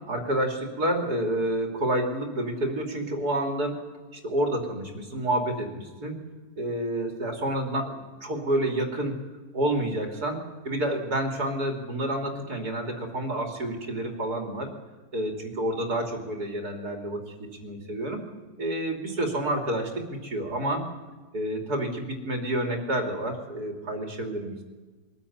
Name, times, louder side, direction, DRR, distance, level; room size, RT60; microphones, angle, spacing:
voice 1, 0.1-3.8 4.1-6.2 6.6-9.2 9.5-10.4 10.6-14.7 15.1-17.3 17.6-18.2 18.6-20.9 21.3-24.6, right 1 dB, 70° right, 3 dB, 3.4 m, -29 dB
23.0 x 14.5 x 9.6 m, 1.3 s
omnidirectional pair, 1.7 m